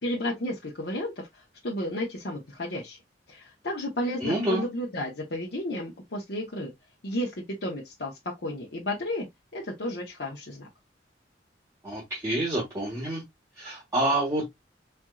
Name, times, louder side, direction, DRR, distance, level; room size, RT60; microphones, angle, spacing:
voice 1, 0.0-1.1 1.6-3.0 3.3-6.7 7.0-7.3 7.6-8.1 8.4-9.3 9.5-10.7, left 1 dB, 60° left, 1.0 m, -32 dB
voice 2, 4.2-4.6 11.8-13.2 13.6-14.5, right 1 dB, 20° right, 1.2 m, -27 dB
4.4 x 2.6 x 2.3 m
head